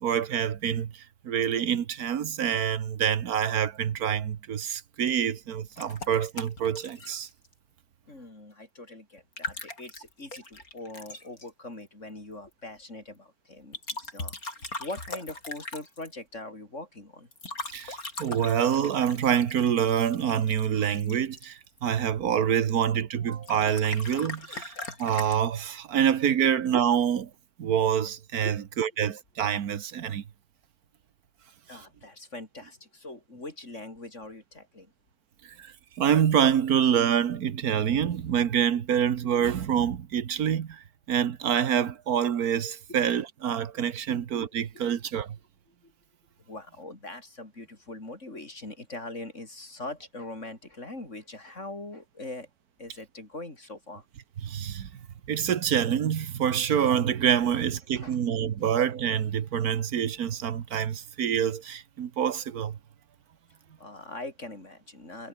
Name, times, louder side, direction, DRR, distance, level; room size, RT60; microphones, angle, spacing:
voice 1, 0.0-0.9 1.2-7.3 17.7-24.7 25.0-27.3 27.6-30.2 35.6-35.7 36.0-40.8 41.1-45.4 54.4-54.9 55.3-62.8, right 8 dB, 85° right, 1.7 m, -26 dB
sound 1, 5.8-7.5 9.2-11.5 13.7-16.1 17.3-21.9 23.3-25.4, left 2 dB, 70° left, 6.2 m, -40 dB
voice 2, 8.1-14.4 14.8-17.3 28.4-28.6 31.7-34.9 42.9-43.0 44.1-44.2 44.7-44.9 45.8-45.9 46.4-52.5 52.8-54.1 57.9-58.2 63.8-65.3, left 2 dB, 50° left, 5.6 m, -42 dB
omnidirectional pair, 1.6 m